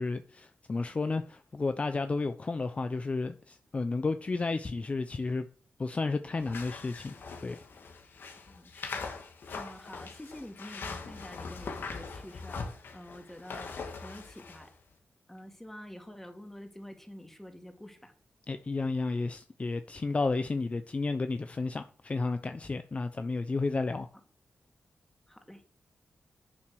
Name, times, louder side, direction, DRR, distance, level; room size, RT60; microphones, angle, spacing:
voice 1, 0.0-5.5 5.8-7.2 7.4-7.6 18.5-24.1, left 3 dB, 35° left, 0.9 m, -32 dB
sound 1, 6.4-14.7, left 4 dB, 70° left, 2.6 m, -42 dB
voice 2, 8.5-9.1 9.4-14.7 15.3-18.1 25.3-25.8, left 1 dB, 10° left, 3.0 m, -48 dB
11.0 x 7.4 x 6.4 m
cardioid pair, 80°, 4 cm